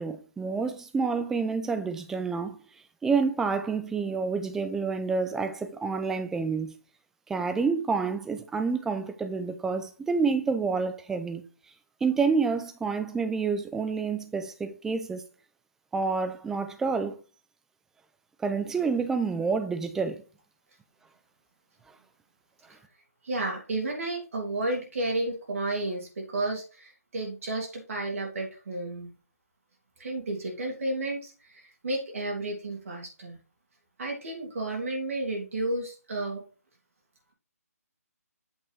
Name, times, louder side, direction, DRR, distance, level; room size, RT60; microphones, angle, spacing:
voice 1, 0.0-2.6 3.0-6.7 7.3-11.4 12.0-15.2 15.9-17.2 18.4-20.2, right 4 dB, 5° right, 0.5 m, -28 dB
voice 2, 23.2-29.1 30.0-33.4 34.0-36.4, right 2 dB, 60° right, 2.9 m, -32 dB
8.5 x 5.4 x 3.2 m
figure-of-eight pair, 145°, 9 cm